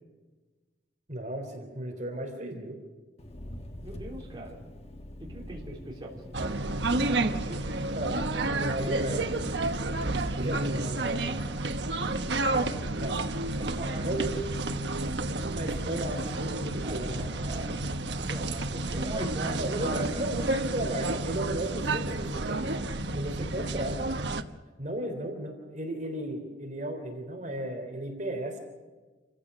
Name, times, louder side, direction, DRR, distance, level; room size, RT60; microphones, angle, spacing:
voice 1, 1.1-2.8 7.9-8.3 8.6-9.2 10.4-11.2 13.0-13.2 14.0-14.4 15.2-17.3 19.6-22.6 23.1-24.0 24.8-28.6, right 1 dB, 45° right, 3 dB, 3.5 m, -34 dB
Engine, 3.2-10.3, left 1 dB, 35° left, 1.2 m, -43 dB
voice 2, 3.8-4.6 5.2-6.6 7.1-7.8 11.9-13.0 13.6-14.1 16.8-20.2, right 1 dB, 25° right, -3 dB, 3.7 m, -40 dB
sound 1, 6.3-24.4, right 2 dB, 75° right, 1.1 m, -31 dB
28.0 x 15.0 x 6.5 m, 1.3 s
head